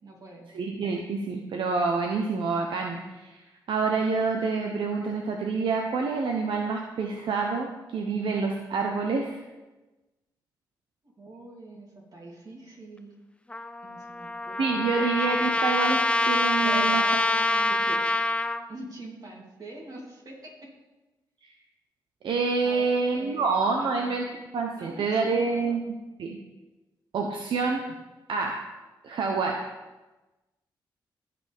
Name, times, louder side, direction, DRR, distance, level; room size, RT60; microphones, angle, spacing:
voice 1, 0.0-0.5 11.2-13.1 13.8-14.9 16.5-17.7 18.7-20.7 22.6-24.1 24.7-25.8, right 1 dB, 45° right, -2 dB, 3.2 m, -44 dB
voice 2, 0.5-3.4 3.7-9.4 14.6-17.0 17.9-18.0 21.4-21.5 22.2-24.3 24.5-25.8 26.2-26.4 27.1-27.8 28.3-28.6 29.0-29.6, right 4 dB, 75° right, 2 dB, 0.9 m, -27 dB
Trumpet, 13.5-18.6, left 2 dB, 15° left, 0.6 m, -25 dB
16.5 x 5.9 x 3.6 m, 1.1 s
cardioid pair, 60°, 9 cm